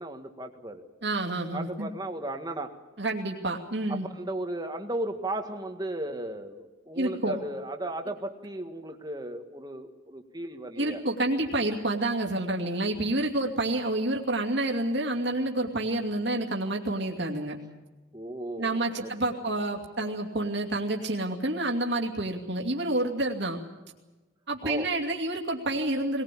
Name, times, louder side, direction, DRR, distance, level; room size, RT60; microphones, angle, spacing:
voice 1, 0.0-0.8 1.5-2.7 3.9-11.0 18.1-19.1 19.4-19.5 20.0-20.1 24.6-24.9, right 1 dB, 20° right, 5 dB, 1.7 m, -35 dB
voice 2, 1.0-1.9 3.0-4.1 7.0-7.4 10.8-17.6 18.6-23.6 24.5-26.2, right 2 dB, 55° right, 0 dB, 2.6 m, -29 dB
20.5 x 19.5 x 8.5 m, 1.1 s
head